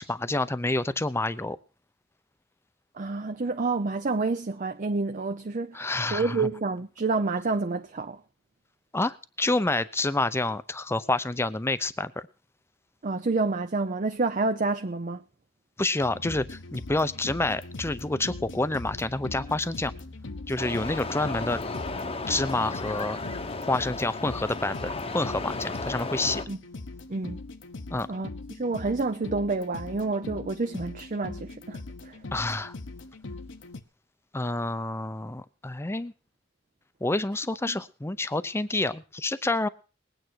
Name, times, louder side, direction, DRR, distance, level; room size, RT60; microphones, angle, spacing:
voice 1, 0.0-1.6 5.7-6.5 8.9-12.1 15.8-19.9 20.5-21.6 22.3-23.2 23.6-26.4 27.9-28.1 32.3-32.8 34.3-36.1 37.0-39.7, left 2 dB, 15° left, 0.6 m, -28 dB
voice 2, 2.9-8.2 13.0-15.2 26.5-26.6 27.1-27.4 28.1-32.2 37.7-37.8, right 3 dB, 45° right, 0.6 m, -29 dB
sound 1, 16.0-33.8, left 2 dB, 75° left, 1.0 m, -41 dB
sound 2, 20.6-26.5, left 3 dB, 30° left, 0.9 m, -34 dB
20.5 x 9.0 x 4.6 m
head